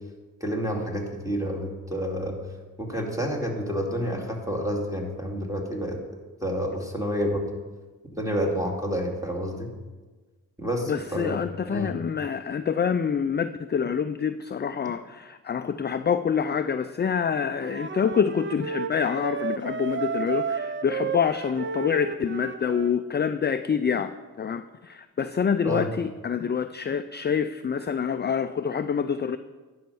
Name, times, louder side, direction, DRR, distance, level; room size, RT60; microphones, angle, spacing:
voice 1, 0.4-2.4 2.8-6.0 6.4-7.5 8.1-9.7 10.6-11.9 25.6-25.9, equal, 10° right, 0 dB, 2.5 m, -29 dB
voice 2, 10.9-29.4, left 7 dB, 30° left, 10 dB, 0.4 m, -26 dB
Wind instrument woodwind instrument, 17.6-23.0, right 5 dB, 30° right, 0.5 m, -32 dB
10.5 x 5.7 x 6.9 m, 1.3 s
cardioid pair, 55°, 37 cm